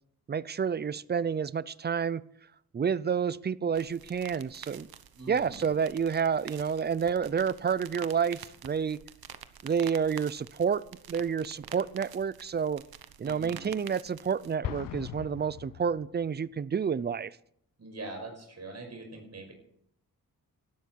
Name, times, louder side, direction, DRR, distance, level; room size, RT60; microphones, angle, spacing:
voice 1, 0.3-2.2 2.7-4.9 5.3-9.0 9.6-10.8 11.1-12.8 13.2-17.4, right 7 dB, 30° right, 19 dB, 0.5 m, -29 dB
sound 1, 3.7-14.6, right 9 dB, 80° right, 1.1 m, -48 dB
voice 2, 5.1-5.7 13.2-13.7 17.8-19.5, right 2 dB, 45° right, 3 dB, 5.7 m, -43 dB
Explosion, 14.6-16.5, left 12 dB, 65° left, 0.5 m, -39 dB
17.5 x 12.5 x 4.6 m, 0.71 s
wide cardioid pair, 115°, 36 cm